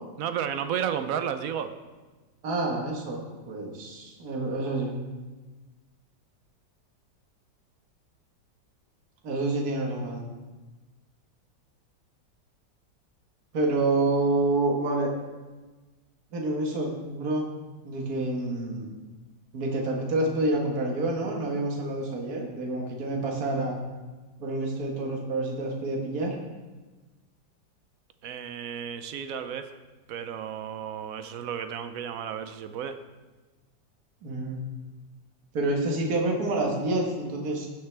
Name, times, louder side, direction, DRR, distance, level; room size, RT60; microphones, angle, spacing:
voice 1, 0.2-1.7 28.2-29.7 30.1-33.0, right 8 dB, 70° right, 9 dB, 0.8 m, -32 dB
voice 2, 2.4-5.0 9.2-10.3 13.5-15.1 16.3-17.5 17.8-18.9 19.5-23.8 24.4-26.4 34.2-34.6 35.5-37.7, right 2 dB, 55° right, 0 dB, 1.9 m, -28 dB
16.0 x 6.5 x 3.4 m, 1.2 s
omnidirectional pair, 2.0 m